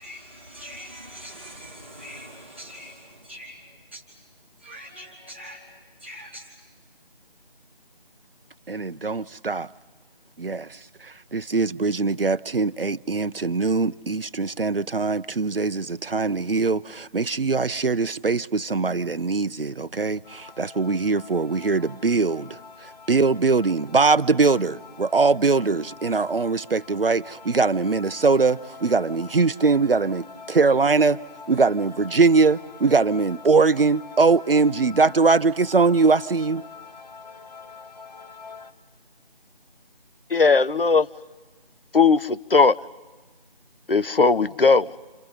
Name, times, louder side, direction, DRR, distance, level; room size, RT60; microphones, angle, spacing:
voice 1, 0.0-4.2 4.6-6.5, equal, 10° right, 1.5 m, -43 dB
voice 2, 8.7-9.7 10.4-31.2 31.5-36.6, right 4 dB, 70° right, 0.7 m, -22 dB
sound 1, 20.2-38.7, left 5 dB, 45° left, 1.3 m, -45 dB
voice 3, 40.3-41.1 41.9-42.8 43.9-44.9, left 4 dB, 65° left, 0.8 m, -18 dB
30.0 x 28.0 x 5.5 m
figure-of-eight pair, 170°, 30 cm